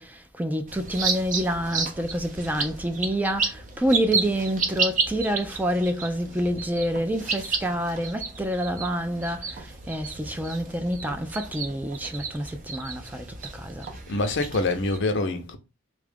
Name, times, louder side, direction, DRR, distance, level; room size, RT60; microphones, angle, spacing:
voice 1, 0.0-13.9, equal, 10° right, 0.3 m, -28 dB
sound 1, 0.7-15.0, right 4 dB, 40° right, 0.7 m, -32 dB
voice 2, 14.1-15.6, left 2 dB, 65° left, 0.6 m, -25 dB
3.5 x 2.4 x 3.3 m
head